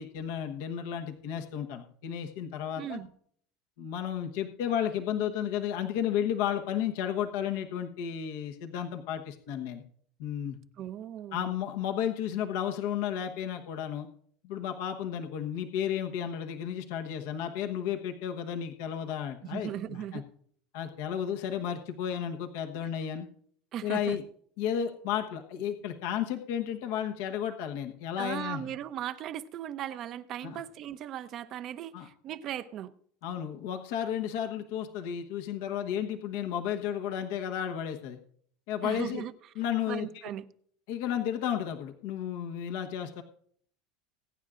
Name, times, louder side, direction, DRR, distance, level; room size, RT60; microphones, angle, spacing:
voice 1, 0.0-3.0 3.8-9.8 10.2-10.6 11.3-14.1 14.4-20.2 20.7-23.3 23.8-24.2 24.6-28.7 30.4-30.6 31.9-32.1 33.2-38.2 38.7-39.2 39.6-40.3 40.9-43.2, left 9 dB, 75° left, 1.1 m, -33 dB
voice 2, 2.8-3.1 10.8-11.6 19.4-20.2 23.7-24.2 28.2-32.9 38.8-39.3 39.9-40.5, right 11 dB, 50° right, 0.7 m, -38 dB
22.0 x 9.7 x 2.5 m
supercardioid pair, 100°, 0 cm